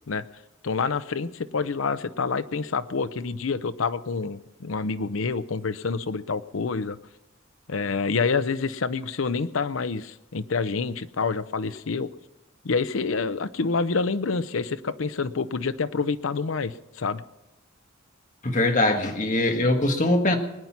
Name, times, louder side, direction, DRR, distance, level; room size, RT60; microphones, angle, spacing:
voice 1, 0.6-7.0 7.7-12.1 12.6-17.2, left 4 dB, 75° left, 13 dB, 0.7 m, -27 dB
voice 2, 18.4-20.4, left 2 dB, 40° left, 4 dB, 1.6 m, -22 dB
21.5 x 9.5 x 5.9 m, 0.95 s
head